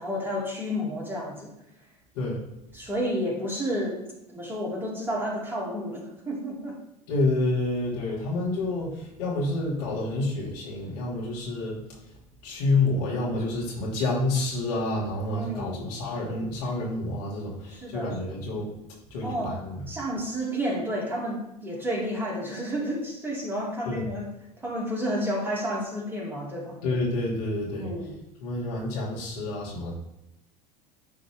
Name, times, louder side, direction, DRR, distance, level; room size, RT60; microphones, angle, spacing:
voice 1, 0.0-1.5 2.7-4.0 4.3-6.8 13.1-13.2 15.3-15.9 17.8-18.2 19.2-19.5 19.9-24.3 24.6-26.8 27.8-28.1, equal, 10° right, -3 dB, 2.7 m, -31 dB
voice 2, 7.1-12.0 12.4-18.7 19.1-19.8 23.8-24.1 26.8-27.9 28.4-29.9, left 2 dB, 75° left, -4 dB, 2.7 m, -28 dB
10.5 x 3.9 x 3.7 m, 0.88 s
hypercardioid pair, 75°, 20 cm